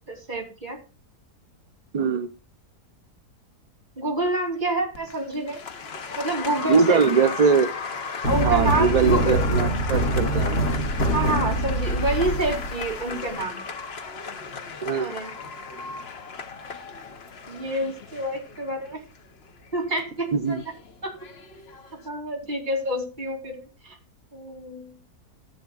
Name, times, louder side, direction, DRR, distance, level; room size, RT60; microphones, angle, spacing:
voice 1, 0.1-0.8 4.0-5.6 6.2-7.3 8.2-9.4 10.1-10.4 11.1-13.6 15.0-15.3 17.5-19.0 19.7-20.6 21.0-21.1 22.0-24.0 24.3-24.9, right 1 dB, 30° right, -1 dB, 3.3 m, -28 dB
voice 2, 1.9-2.3 6.7-7.7 8.4-10.6 14.8-15.1 20.3-20.6, right 5 dB, 75° right, 10 dB, 0.3 m, -21 dB
Applause, 4.9-22.1, left 5 dB, 45° left, 1.0 m, -36 dB
sound 1, 8.2-13.4, right 1 dB, 75° left, 2.4 m, -24 dB
14.5 x 9.1 x 2.4 m, 0.34 s
omnidirectional pair, 1.7 m